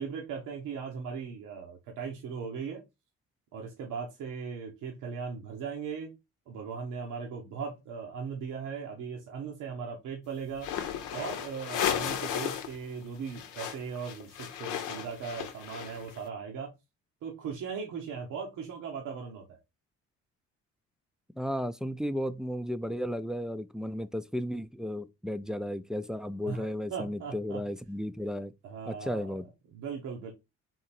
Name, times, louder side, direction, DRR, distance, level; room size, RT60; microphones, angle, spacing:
voice 1, 0.0-2.8 3.5-6.2 6.5-10.7 11.1-16.7 17.2-19.6 26.4-27.6 28.6-29.4 29.7-30.3, right 6 dB, 85° right, 1.0 m, -38 dB
sound 1, 10.6-12.8 13.0-16.2, left 9 dB, 90° left, 0.8 m, -34 dB
voice 2, 21.4-28.5 28.9-29.5, equal, ahead, 0.4 m, -34 dB
3.8 x 2.9 x 4.2 m
cardioid pair, 90°, 30 cm